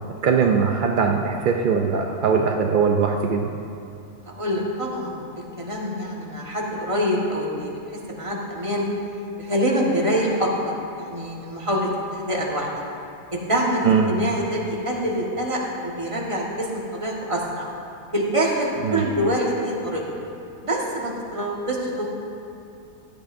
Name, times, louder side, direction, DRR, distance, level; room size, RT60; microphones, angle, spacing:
voice 1, 0.2-3.5 13.8-14.1 18.8-19.0, right 6 dB, 65° right, 2 dB, 0.5 m, -20 dB
voice 2, 4.2-8.9 9.4-12.7 13.3-17.7 18.1-20.0 20.6-22.2, equal, 25° right, -3 dB, 1.5 m, -25 dB
15.5 x 10.5 x 2.6 m, 2.6 s
omnidirectional pair, 1.5 m